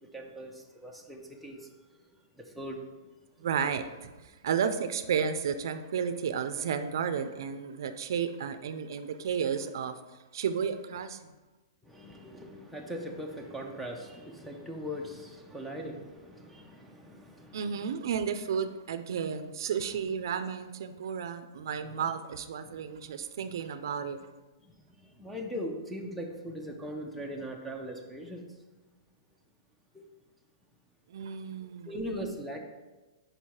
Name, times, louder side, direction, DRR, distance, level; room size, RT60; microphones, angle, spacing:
voice 1, 0.0-3.1 11.8-17.9 19.1-19.3 19.9-20.1 21.9-22.0 22.6-22.8 24.6-28.6 29.9-30.1 31.9-32.6, equal, ahead, -1 dB, 0.5 m, -41 dB
voice 2, 3.4-10.0 10.3-11.2 17.5-24.2 31.1-31.9, right 7 dB, 65° right, 10 dB, 0.4 m, -32 dB
5.1 x 4.2 x 4.6 m, 1.2 s
hypercardioid pair, 160°, 2 cm